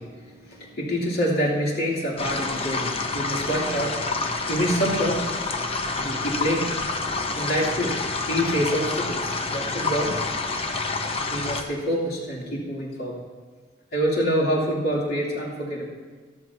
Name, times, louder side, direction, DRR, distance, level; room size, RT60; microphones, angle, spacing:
voice 1, 0.0-4.1 4.5-5.3 6.0-6.7 7.3-8.0 8.3-10.2 11.3-13.2 13.9-15.9, equal, 60° left, -4 dB, 3.1 m, -26 dB
sound 1, 2.2-11.6, left 3 dB, 35° left, 0.8 m, -28 dB
13.5 x 13.5 x 2.8 m, 1.5 s
head